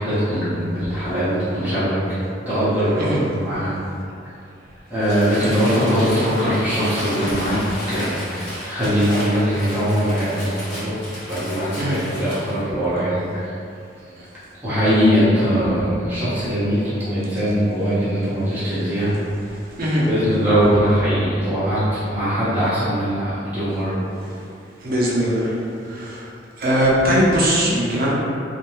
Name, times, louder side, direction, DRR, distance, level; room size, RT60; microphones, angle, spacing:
voice 1, 0.0-2.2 2.5-3.2 3.4-3.7 4.9-7.6 7.9-11.0 11.3-13.5 14.6-19.1 20.1-24.0, equal, 10° right, -14 dB, 0.9 m, -21 dB
Crumpling crinkling, 5.0-12.6, equal, 70° left, 1.0 m, -33 dB
voice 2, 24.8-25.6 25.9-26.2 26.6-28.1, equal, 50° right, -5 dB, 0.6 m, -20 dB
2.5 x 2.2 x 3.0 m, 2.5 s
head